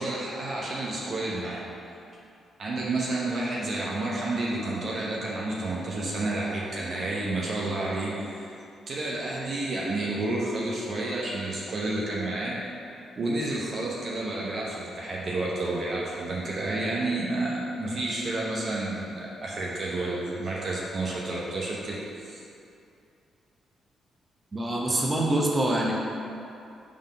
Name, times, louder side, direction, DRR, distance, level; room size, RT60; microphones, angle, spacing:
voice 1, 0.0-1.6 2.6-8.5 8.9-12.6 13.2-22.4, right 2 dB, 55° right, -5 dB, 0.9 m, -30 dB
voice 2, 24.5-25.9, right 1 dB, 30° right, -2 dB, 1.0 m, -25 dB
5.3 x 3.9 x 4.9 m, 2.6 s
hypercardioid pair, 40°, 0 cm